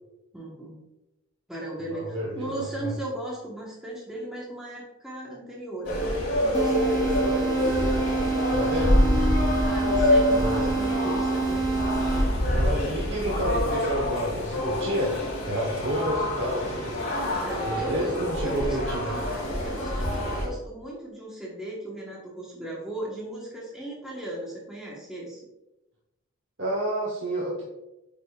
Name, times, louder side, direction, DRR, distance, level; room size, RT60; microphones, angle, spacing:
voice 1, 0.3-0.8 1.5-7.5 9.6-11.7 17.1-18.1 18.4-19.3 19.6-25.4, right 1 dB, 5° right, -5 dB, 1.3 m, -37 dB
voice 2, 1.9-2.5 2.8-2.9 8.5-9.1 10.3-10.7 12.5-15.1 15.4-16.9 17.5-19.1 26.6-27.6, equal, 55° right, -4 dB, 1.2 m, -30 dB
sound 1, 5.8-20.5, left 1 dB, 60° left, 2.2 m, -26 dB
sound 2, 6.5-12.6, right 4 dB, 20° right, 0.8 m, -28 dB
8.7 x 5.3 x 2.4 m, 0.95 s
head